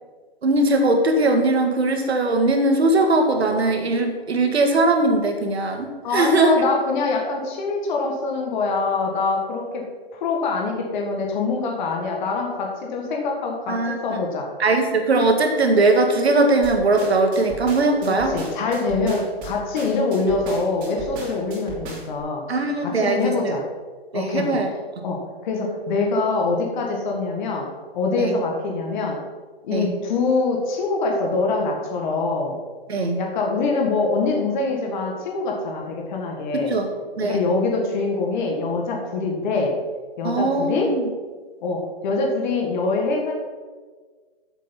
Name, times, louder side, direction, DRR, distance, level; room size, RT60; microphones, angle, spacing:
voice 1, 0.4-6.6 13.7-14.2 14.6-18.4 19.0-19.1 22.5-23.6 24.1-24.7 28.2-28.4 29.7-29.9 32.9-33.2 36.5-36.9 37.2-37.4 40.2-41.1, right 2 dB, 90° right, 4 dB, 1.8 m, -20 dB
voice 2, 6.0-9.8 10.1-14.5 18.0-22.4 22.8-23.6 24.1-24.5 25.0-27.7 27.9-29.2 29.7-32.6 33.2-36.7 37.2-39.7 40.2-40.9 41.6-43.3, left 3 dB, 50° left, 0 dB, 1.7 m, -24 dB
sound 1, 16.6-22.2, right 2 dB, 30° right, 3.1 m, -37 dB
7.5 x 6.7 x 5.7 m, 1.4 s
hypercardioid pair, 145°, 31 cm